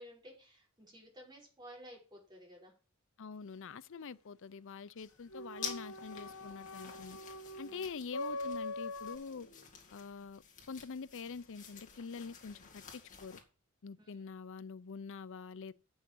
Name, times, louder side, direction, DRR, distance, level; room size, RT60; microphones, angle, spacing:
voice 1, 0.0-2.7 5.4-5.5 7.6-7.9 14.0-14.3, equal, 20° right, 5.5 m, -54 dB
voice 2, 3.2-7.2 7.6-9.5 9.9-13.4 13.8-15.7, left 5 dB, 60° left, 0.5 m, -45 dB
sound 1, 5.0-13.4, left 6 dB, 35° left, 2.3 m, -50 dB
sound 2, 5.3-9.2, left 2 dB, 75° left, 1.3 m, -42 dB
8.8 x 6.4 x 7.7 m
head